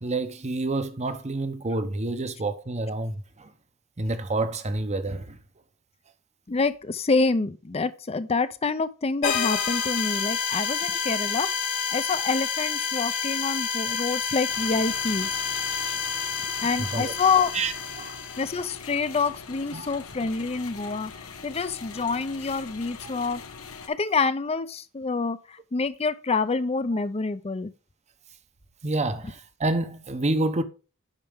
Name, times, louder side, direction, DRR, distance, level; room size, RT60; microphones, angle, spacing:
voice 1, 0.0-3.5 4.0-5.4 16.8-17.1 17.5-18.1 19.7-19.9 28.8-30.6, right 2 dB, 30° right, 0.8 m, -28 dB
voice 2, 6.5-11.5 11.9-15.3 16.6-17.5 18.4-21.1 21.4-23.4 23.9-27.7, left 4 dB, 30° left, 0.5 m, -27 dB
sound 1, 9.2-18.6, left 6 dB, 65° left, 1.9 m, -29 dB
sound 2, 14.5-23.9, left 5 dB, 85° left, 1.2 m, -42 dB
8.9 x 5.8 x 3.5 m
head